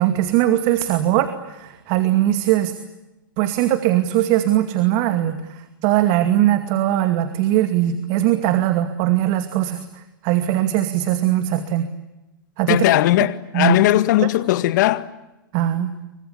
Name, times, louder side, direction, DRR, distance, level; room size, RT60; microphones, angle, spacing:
voice 1, 0.0-2.7 3.4-11.9 12.6-12.8 13.5-13.8 14.2-14.3 15.5-15.9, right 13 dB, 45° right, 2.4 m, -20 dB
voice 2, 12.7-15.1, left 15 dB, 55° left, 1.9 m, -18 dB
28.5 x 24.5 x 8.5 m
hypercardioid pair, 120°, 12 cm